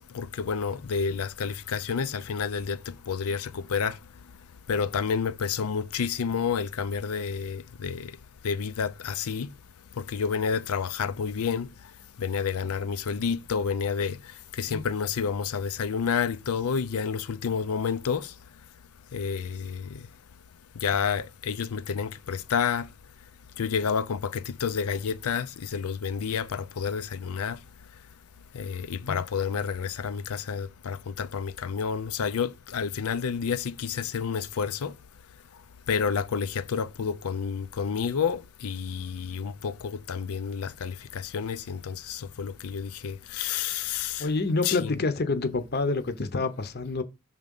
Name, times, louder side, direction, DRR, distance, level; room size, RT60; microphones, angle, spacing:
voice 1, 0.0-4.0 4.7-8.1 8.4-9.5 10.0-11.7 12.2-18.3 19.1-20.1 20.8-22.9 23.6-27.6 28.5-34.9 35.9-44.3 44.6-45.0, left 6 dB, 80° left, 0.5 m, -30 dB
voice 2, 44.2-47.0, left 3 dB, 45° left, 0.8 m, -28 dB
6.5 x 3.7 x 5.3 m
head